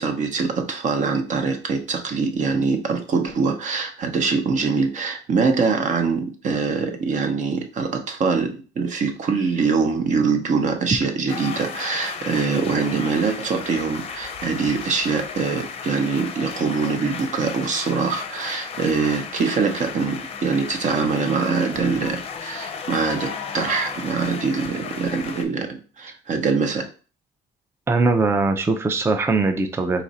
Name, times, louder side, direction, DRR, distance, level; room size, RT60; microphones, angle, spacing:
voice 1, 0.0-26.9, right 5 dB, 45° right, 6 dB, 0.8 m, -23 dB
sound 1, 11.3-25.4, left 6 dB, 35° left, 0.6 m, -34 dB
voice 2, 27.9-30.0, right 3 dB, 15° right, 6 dB, 0.4 m, -21 dB
4.1 x 2.5 x 4.0 m, 0.37 s
cardioid pair, 110°, 17 cm